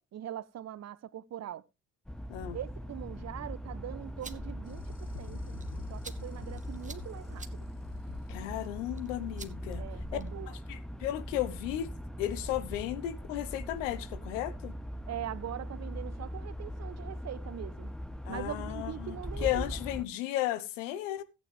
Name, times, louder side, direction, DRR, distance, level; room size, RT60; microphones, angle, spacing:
voice 1, 0.0-1.6 2.5-5.6 5.9-7.7 9.7-10.6 15.1-17.9 18.3-19.7, right 11 dB, 45° right, 0.8 m, -42 dB
sound 1, 2.1-20.1, equal, ahead, 0.7 m, -40 dB
sound 2, 4.0-10.5, right 4 dB, 20° right, 1.4 m, -53 dB
sound 3, 4.6-10.5, left 7 dB, 60° left, 2.9 m, -50 dB
voice 2, 8.3-9.8 10.1-10.2 10.7-11.9 12.2-14.7 18.2-21.2, left 13 dB, 80° left, 1.2 m, -34 dB
14.0 x 8.9 x 3.4 m
hypercardioid pair, 60°, 37 cm